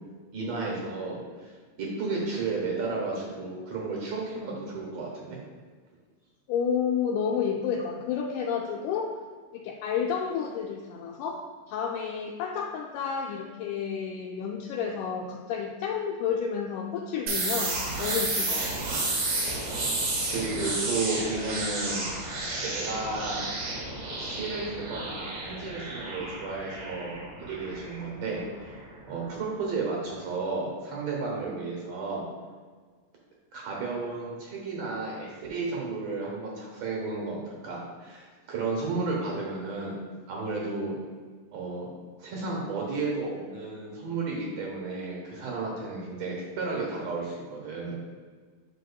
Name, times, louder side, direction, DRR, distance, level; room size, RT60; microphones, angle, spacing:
voice 1, 0.3-1.5 1.8-5.4 20.3-22.1 22.6-23.5 24.2-27.2 27.5-28.8 29.1-32.3 33.5-39.9 40.3-41.0 41.5-41.9 42.2-47.9, right 3 dB, 60° right, -2 dB, 2.2 m, -33 dB
voice 2, 6.5-9.2 9.5-18.7, left 7 dB, 80° left, -1 dB, 2.0 m, -30 dB
sound 1, 17.3-28.9, right 2 dB, 80° right, 3.1 m, -32 dB
8.2 x 6.2 x 2.3 m, 1.5 s
omnidirectional pair, 3.6 m